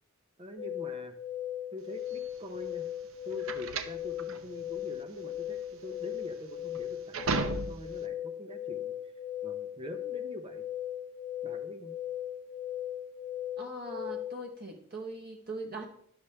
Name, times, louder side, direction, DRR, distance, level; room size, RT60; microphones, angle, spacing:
voice 1, 0.4-1.2 1.7-2.9 3.2-8.9 9.4-10.7 11.4-11.9, left 1 dB, 25° right, 6 dB, 0.5 m, -44 dB
sound 1, 0.6-14.4, left 11 dB, 35° left, 0.3 m, -38 dB
sound 2, 2.1-8.0, right 4 dB, 65° right, 0.7 m, -36 dB
voice 2, 13.6-15.8, right 1 dB, 40° right, 0 dB, 1.0 m, -40 dB
11.0 x 6.9 x 3.3 m, 0.69 s
head